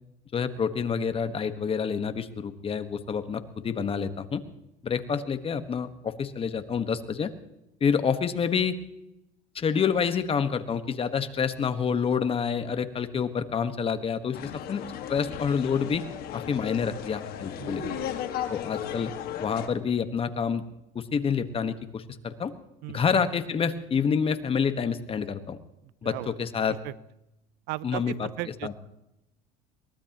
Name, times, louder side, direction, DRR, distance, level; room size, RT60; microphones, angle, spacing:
voice 1, 0.3-4.4 4.8-7.3 7.8-8.8 9.5-14.8 15.1-16.0 16.3-17.8 18.5-19.1 19.4-20.6 20.9-22.5 22.9-25.6 26.0-26.7 27.8-28.3 28.6-28.7, left 6 dB, 30° left, 10 dB, 1.4 m, -28 dB
sound 1, 14.3-19.7, left 10 dB, 60° left, 1.8 m, -35 dB
voice 2, 17.6-18.2 22.8-23.0 26.0-26.4 26.7-26.9 27.7-28.7, right 18 dB, 70° right, 20 dB, 0.6 m, -37 dB
23.0 x 19.0 x 3.0 m, 0.87 s
supercardioid pair, 95°, 17 cm